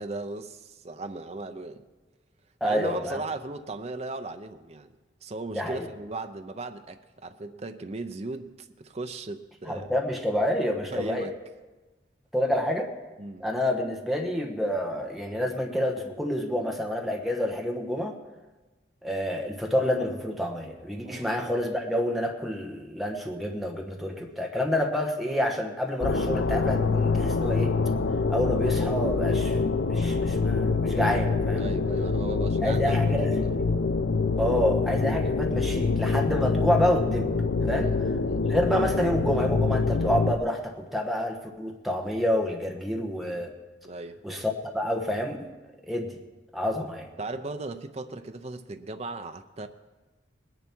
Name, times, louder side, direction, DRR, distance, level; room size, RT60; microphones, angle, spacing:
voice 1, 0.0-1.8 2.6-4.9 5.2-9.9 10.9-11.4 13.2-13.5 21.0-21.3 31.6-33.6 34.5-34.6 37.7-38.0 38.2-38.5 43.8-44.2 47.2-49.7, right 2 dB, 35° right, 8 dB, 0.6 m, -37 dB
voice 2, 2.6-3.2 5.5-5.9 9.7-11.3 12.3-12.9 13.4-18.1 19.0-27.7 28.3-29.6 29.8-31.7 32.6-33.6 34.4-37.3 37.6-37.9 38.4-43.5 44.2-45.5 45.8-46.2 46.5-47.1, left 1 dB, ahead, 1 dB, 1.2 m, -28 dB
sound 1, 26.0-40.3, left 4 dB, 70° left, 0.5 m, -25 dB
20.5 x 10.5 x 4.5 m, 1.2 s
head